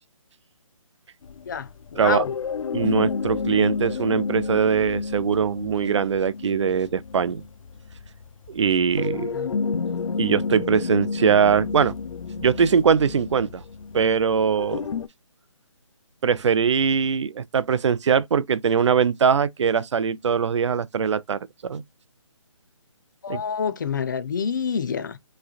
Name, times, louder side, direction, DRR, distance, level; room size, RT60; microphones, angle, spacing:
sound 1, 1.2-15.1, left 5 dB, 90° left, 0.4 m, -30 dB
voice 1, 1.5-2.3 9.3-9.5 23.2-25.2, left 6 dB, 35° left, 0.5 m, -27 dB
voice 2, 2.7-7.4 8.5-9.4 10.2-12.0 12.4-13.6 13.9-14.9 16.2-21.8 23.3-23.4, right 6 dB, 65° right, 0.4 m, -22 dB
3.6 x 3.2 x 2.3 m
hypercardioid pair, 160°, 17 cm